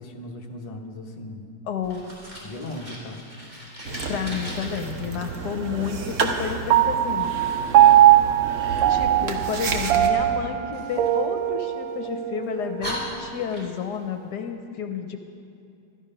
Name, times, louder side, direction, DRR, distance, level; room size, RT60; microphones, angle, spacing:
voice 1, 0.0-1.5 2.4-3.2, left 1 dB, 30° left, 1 dB, 0.8 m, -37 dB
voice 2, 1.7-2.0 4.1-7.3 8.9-15.2, left 7 dB, 70° left, 6 dB, 1.2 m, -31 dB
Fire, 1.8-4.8 10.7-12.0 12.4-12.5 12.8-14.0, equal, 25° right, 2.6 m, -38 dB
sound 1, 3.8-10.1, right 4 dB, 50° right, 1.2 m, -31 dB
Piano, 6.7-13.4, right 12 dB, 80° right, 1.3 m, -20 dB
13.0 x 12.5 x 5.5 m, 2.6 s
omnidirectional pair, 2.0 m